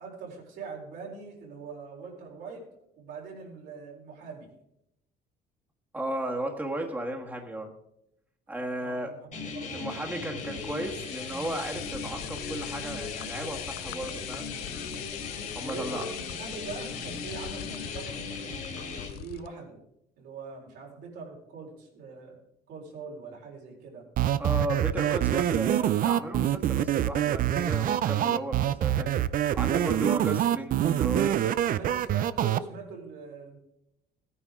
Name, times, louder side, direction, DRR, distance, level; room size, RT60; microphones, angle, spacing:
voice 1, 0.0-2.7 3.0-4.5 8.8-9.9 10.4-10.6 15.6-18.1 18.4-19.8 20.2-22.4 22.7-24.1 31.6-33.6, right 4 dB, 80° right, -2 dB, 4.1 m, -42 dB
voice 2, 5.9-7.7 8.5-9.1 9.7-14.5 15.5-16.0 24.4-29.3 29.5-31.7, right 1 dB, 10° right, 1 dB, 1.5 m, -35 dB
sound 1, 9.3-19.1, left 4 dB, 50° left, 2.7 m, -38 dB
sound 2, 10.4-19.5, left 15 dB, 75° left, 0.4 m, -42 dB
sound 3, 24.2-32.6, right 11 dB, 55° right, 0.5 m, -25 dB
16.5 x 9.8 x 3.7 m, 0.80 s
cardioid pair, 110°, 17 cm